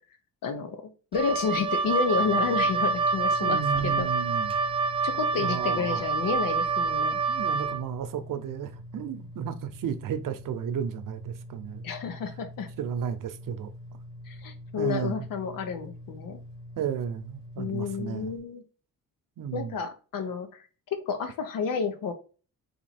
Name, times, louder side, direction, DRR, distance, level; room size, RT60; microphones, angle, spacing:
voice 1, 0.4-0.8 1.1-4.1 5.0-7.2 11.8-12.7 14.3-16.4 17.6-18.6 19.5-20.6 20.9-22.1, left 6 dB, 75° left, 1.0 m, -30 dB
Wind instrument woodwind instrument, 1.1-7.8, right 4 dB, 15° right, 0.3 m, -27 dB
sound 1, 2.1-18.4, left 1 dB, 10° left, 1.6 m, -45 dB
voice 2, 3.4-4.6 5.3-6.1 7.3-11.8 12.8-13.7 14.8-15.3 16.8-18.3 19.4-19.7, right 8 dB, 70° right, 0.7 m, -33 dB
4.2 x 2.8 x 4.2 m
cardioid pair, 110°, 34 cm